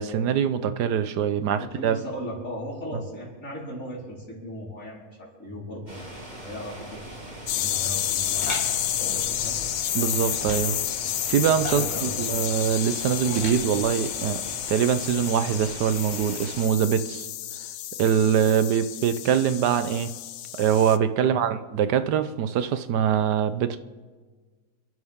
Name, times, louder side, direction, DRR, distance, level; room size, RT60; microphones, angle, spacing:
voice 1, 0.0-2.0 9.9-10.8 11.3-14.4 14.7-17.3 18.0-20.1 20.6-23.8, right 8 dB, 70° right, 11 dB, 1.3 m, -23 dB
voice 2, 1.6-8.5 9.0-9.6 11.7-12.2 21.2-21.4, equal, 45° left, -5 dB, 4.7 m, -37 dB
sound 1, 5.9-16.7, right 1 dB, 25° right, 2.5 m, -41 dB
sound 2, 7.5-21.0, left 12 dB, 70° left, 0.8 m, -30 dB
sound 3, 8.3-8.7 10.3-10.8 11.5-12.0 13.2-13.7, left 1 dB, 25° left, 3.8 m, -35 dB
28.5 x 11.0 x 3.7 m, 1.4 s
omnidirectional pair, 1.9 m